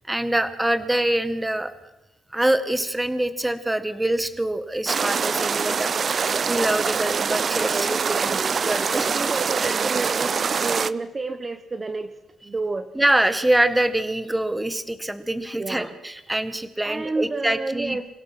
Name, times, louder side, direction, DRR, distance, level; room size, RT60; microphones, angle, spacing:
voice 1, 0.1-1.7 2.3-6.2 6.5-9.1 9.6-10.1 12.9-18.0, right 1 dB, 10° right, 11 dB, 1.6 m, -25 dB
sound 1, 4.9-10.9, right 6 dB, 45° right, 0.6 m, -24 dB
voice 2, 7.5-8.5 8.9-12.1 12.4-12.9 15.6-15.9 16.8-18.1, right 3 dB, 25° right, 8 dB, 1.1 m, -30 dB
28.0 x 16.5 x 6.0 m, 1.0 s
cardioid pair, 90°, 0 cm